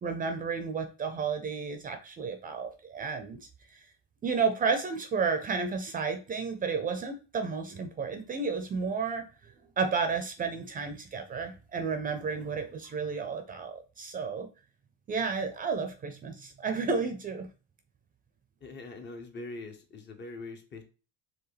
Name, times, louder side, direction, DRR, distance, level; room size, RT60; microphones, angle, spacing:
voice 1, 0.0-3.8 4.2-14.5 15.1-17.5, right 5 dB, 25° right, 8 dB, 0.6 m, -32 dB
voice 2, 18.6-20.8, left 3 dB, 35° left, 5 dB, 1.1 m, -42 dB
4.8 x 3.4 x 3.3 m, 0.33 s
cardioid pair, 130°, 31 cm